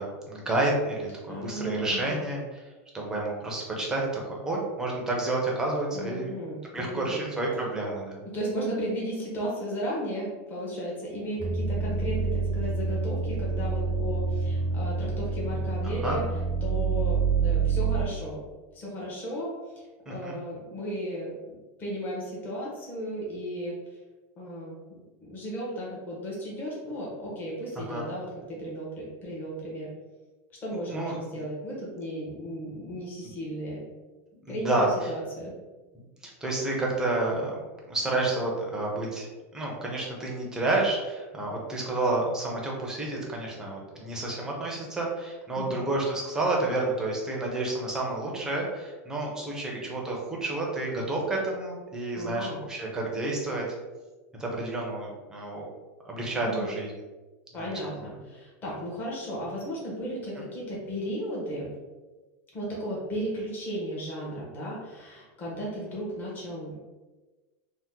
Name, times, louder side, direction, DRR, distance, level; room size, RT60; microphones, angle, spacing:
voice 1, 0.0-2.6 2.9-6.3 6.7-8.2 16.0-16.2 20.1-20.4 27.9-28.1 30.9-31.2 34.5-35.1 36.2-37.6 37.9-39.3 39.5-53.6 54.4-55.7 56.0-56.9 57.6-58.0, right 2 dB, 10° right, -2 dB, 0.6 m, -30 dB
voice 2, 1.3-2.2 5.9-7.3 8.2-16.3 16.6-18.4 18.7-23.8 24.4-24.8 25.2-29.9 30.6-33.8 34.5-35.5 45.6-45.8 52.2-52.6 56.4-56.7 57.5-61.7 62.5-66.8, equal, 25° left, -5 dB, 0.9 m, -35 dB
sound 1, 11.4-18.0, right 4 dB, 70° left, 1.0 m, -27 dB
2.8 x 2.1 x 3.5 m, 1.2 s
supercardioid pair, 155°, 8 cm